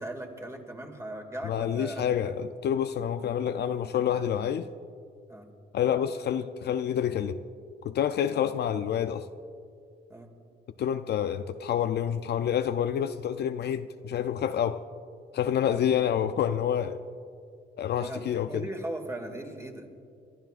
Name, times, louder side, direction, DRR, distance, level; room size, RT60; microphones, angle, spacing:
voice 1, 0.0-2.3 5.3-5.5 8.3-8.5 10.1-10.3 15.6-15.9 18.0-19.9, right 1 dB, 15° right, 2.2 m, -39 dB
voice 2, 1.5-4.7 5.7-7.4 7.8-9.3 10.8-14.8 15.3-17.0 17.8-18.6, left 9 dB, 60° left, 0.5 m, -28 dB
29.0 x 12.5 x 2.5 m
cardioid pair, 90°, 20 cm